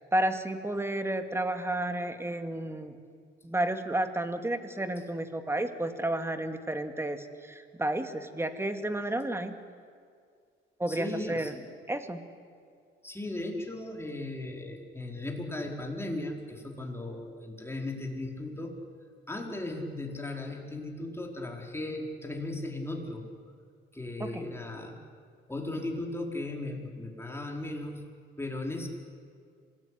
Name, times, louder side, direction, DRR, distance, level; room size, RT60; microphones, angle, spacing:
voice 1, 0.1-3.0 3.4-9.5 10.8-11.5 11.9-12.2 24.2-24.5, right 1 dB, 10° right, 7 dB, 2.3 m, -31 dB
voice 2, 10.9-11.6 13.0-18.8 19.3-23.3 23.9-25.0 25.5-28.1 28.4-28.9, left 2 dB, 10° left, 1 dB, 4.8 m, -36 dB
26.5 x 19.5 x 9.9 m, 2.2 s
cardioid pair, 90°, 20 cm